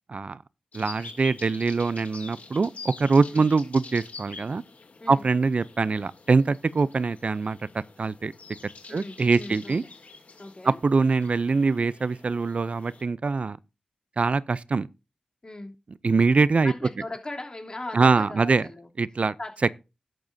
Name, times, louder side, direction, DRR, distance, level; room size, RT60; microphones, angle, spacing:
voice 1, 0.1-0.4 0.7-4.6 5.1-7.6 8.0-8.3 8.9-9.8 10.6-13.6 14.2-14.9 16.0-16.7 17.9-18.7 19.0-19.4, right 4 dB, 55° right, 0.5 m, -23 dB
sound 1, 0.7-13.0, left 4 dB, 70° left, 2.6 m, -46 dB
voice 2, 8.9-9.9 10.4-10.8 15.4-15.7 16.6-18.9 19.4-19.7, left 2 dB, 35° left, 3.1 m, -39 dB
12.0 x 11.0 x 2.7 m
wide cardioid pair, 75°, 3 cm